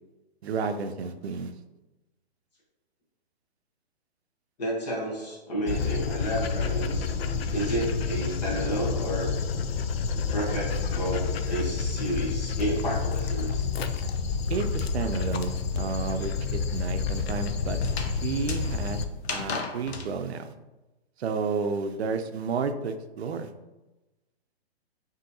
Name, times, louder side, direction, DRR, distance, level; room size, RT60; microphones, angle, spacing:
voice 1, 0.4-1.5 14.5-17.8 18.1-19.0 19.3-20.5 21.2-23.5, right 5 dB, 80° right, 8 dB, 0.5 m, -31 dB
voice 2, 4.6-7.1 7.5-9.3 10.3-13.7, right 1 dB, 40° left, -3 dB, 1.0 m, -31 dB
Dog, 5.7-19.0, left 5 dB, 70° left, 0.5 m, -29 dB
sound 1, 10.2-14.0 14.2-20.1, left 4 dB, 90° left, 0.9 m, -39 dB
5.3 x 2.8 x 2.7 m, 1.1 s
hypercardioid pair, 160°, 32 cm